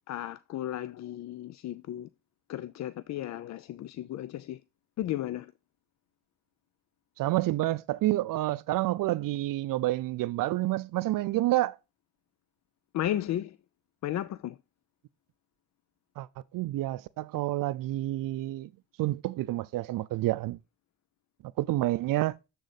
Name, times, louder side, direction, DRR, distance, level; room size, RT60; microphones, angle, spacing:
voice 1, 0.1-2.1 2.5-4.6 5.0-5.5 12.9-13.6 14.0-14.6, left 12 dB, 50° left, 0.4 m, -34 dB
voice 2, 7.2-11.8 16.2-16.3 16.5-18.7 19.0-20.6 21.6-22.4, right 16 dB, 65° right, 0.5 m, -29 dB
8.0 x 3.8 x 4.0 m
cardioid pair, 85°, 36 cm